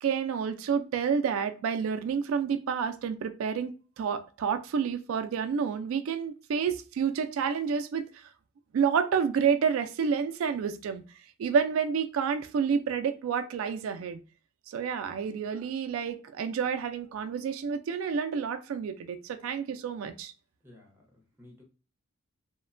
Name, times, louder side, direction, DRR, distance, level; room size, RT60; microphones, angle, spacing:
voice 1, 0.0-8.3 8.7-11.0 11.4-14.2 14.7-20.3, right 6 dB, 75° right, 8 dB, 0.3 m, -29 dB
voice 2, 20.6-21.6, left 1 dB, 10° right, -1 dB, 0.7 m, -55 dB
3.0 x 2.1 x 2.4 m, 0.35 s
head